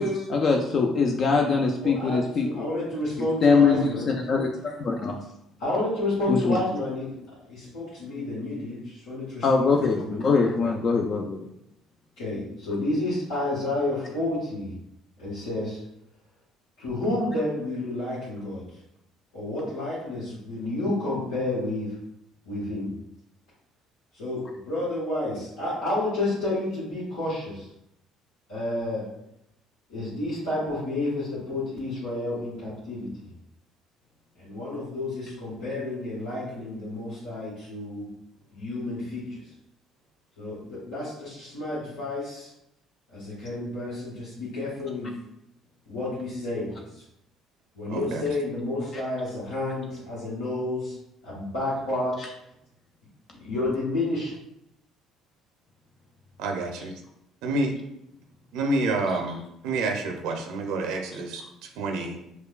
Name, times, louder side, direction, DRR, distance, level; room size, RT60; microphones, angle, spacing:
voice 1, 0.0-2.7 3.4-5.2 6.3-6.6 9.4-11.4 52.2-52.3 59.1-59.2, left 4 dB, 50° left, 2 dB, 0.4 m, -23 dB
voice 2, 1.8-4.1 5.6-7.1 7.4-10.2 12.2-14.7 15.2-15.8 16.8-18.6 19.3-21.9 22.4-22.9 24.1-27.7 28.5-29.0 29.9-33.3 34.4-38.1 38.5-39.4 40.4-42.5 43.1-45.1 45.9-46.7 47.7-51.0 51.2-52.3 53.3-54.3, left 1 dB, 80° left, -10 dB, 1.2 m, -30 dB
voice 3, 47.9-48.2 56.4-56.9 57.4-57.7 58.5-61.4 61.8-62.2, right 2 dB, 70° right, 3 dB, 0.5 m, -28 dB
4.8 x 2.2 x 2.3 m, 0.79 s
hypercardioid pair, 60°, 0 cm